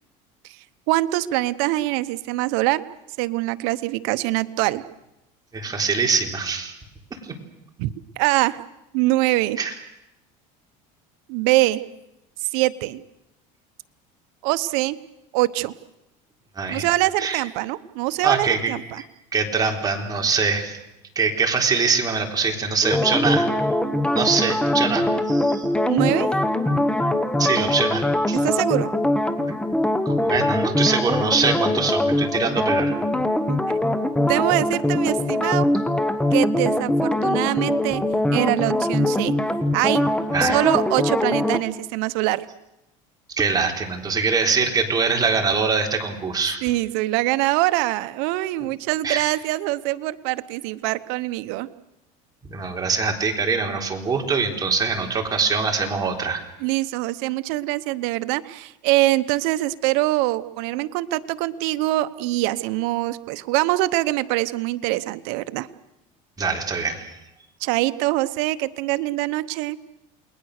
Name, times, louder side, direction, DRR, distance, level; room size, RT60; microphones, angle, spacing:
voice 1, 0.9-2.8 3.2-4.8 7.8-8.6 8.9-9.6 11.3-11.8 12.5-13.0 14.4-15.0 15.3-15.7 16.7-19.0 25.9-26.3 28.4-28.9 33.5-33.6 34.3-35.7 36.3-38.0 38.3-39.4 39.7-40.0 40.4-42.4 46.6-51.7 56.6-65.7 67.6-69.8, right 18 dB, 75° right, 14 dB, 1.0 m, -23 dB
voice 2, 5.5-6.7 9.6-9.7 16.6-16.9 17.2-17.4 18.2-18.7 19.3-20.8 21.2-23.5 24.1-25.7 27.4-28.4 30.1-33.0 40.3-40.6 43.3-46.6 49.0-49.2 52.5-56.4 66.4-67.1, right 5 dB, 20° right, 1 dB, 3.8 m, -23 dB
sound 1, 22.8-41.6, left 1 dB, 5° left, 1.5 m, -22 dB
29.0 x 21.0 x 6.6 m, 0.91 s
cardioid pair, 135°, 18 cm